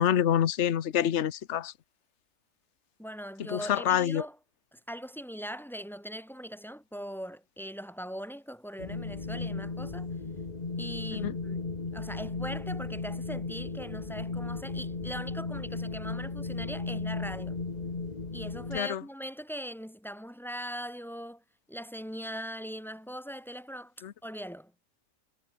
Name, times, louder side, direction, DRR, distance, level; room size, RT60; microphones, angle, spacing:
voice 1, 0.0-1.7 3.5-4.2 11.1-11.3 18.7-19.0 24.0-24.1, left 10 dB, 50° left, 1.1 m, -26 dB
voice 2, 3.0-4.4 4.7-10.1 10.8-11.6 11.9-17.6 18.3-21.4 21.7-23.9 24.2-24.7, equal, ahead, 0.9 m, -40 dB
Wind, 8.8-18.8, left 3 dB, 25° left, 1.5 m, -35 dB
omnidirectional pair, 1.7 m